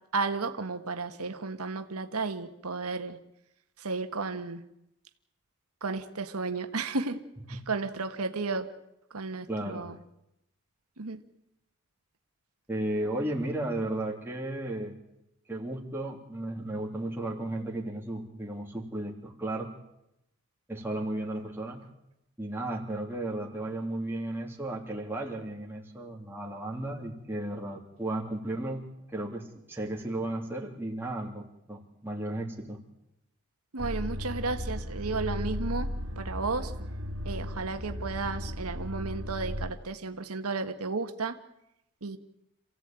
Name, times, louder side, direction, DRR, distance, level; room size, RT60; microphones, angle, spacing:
voice 1, 0.1-3.2 3.8-4.6 5.8-7.2 7.5-8.7 9.1-10.0 11.0-11.2 33.7-35.9 36.2-36.7 37.2-41.4 42.0-42.2, right 3 dB, 90° right, 8 dB, 1.5 m, -33 dB
voice 2, 9.5-9.9 12.7-14.9 15.5-19.7 20.7-21.8 22.4-28.8 29.1-32.8, right 1 dB, 10° right, -1 dB, 3.1 m, -34 dB
sound 1, 33.8-39.7, equal, 70° right, 2.5 m, -35 dB
27.5 x 16.0 x 9.0 m, 0.86 s
head